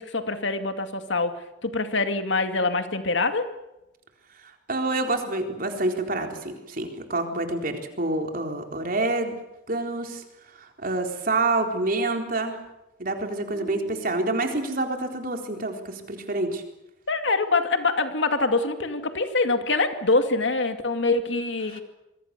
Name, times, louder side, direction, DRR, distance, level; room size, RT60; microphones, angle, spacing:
voice 1, 0.0-1.3 1.6-3.5 13.5-14.0 17.1-21.8, left 3 dB, 75° left, 7 dB, 2.4 m, -25 dB
voice 2, 4.7-9.4 9.7-10.2 10.6-12.6 13.0-16.6 21.7-21.8, right 2 dB, 50° right, 4 dB, 4.0 m, -27 dB
26.5 x 23.0 x 6.9 m, 0.91 s
head